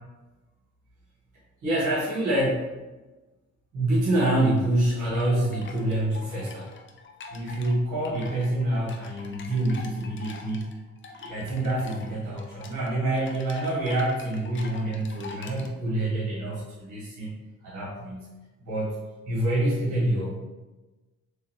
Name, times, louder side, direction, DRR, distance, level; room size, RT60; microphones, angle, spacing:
voice 1, 1.6-2.7 3.7-6.7 7.3-10.6 11.1-17.3 17.6-18.3 18.6-19.0 19.2-20.3, right 1 dB, 85° right, -7 dB, 1.4 m, -26 dB
sound 1, 4.3-15.7, left 4 dB, 40° left, 0.6 m, -45 dB
3.9 x 3.3 x 2.9 m, 1.2 s
cardioid pair, 90°, 30 cm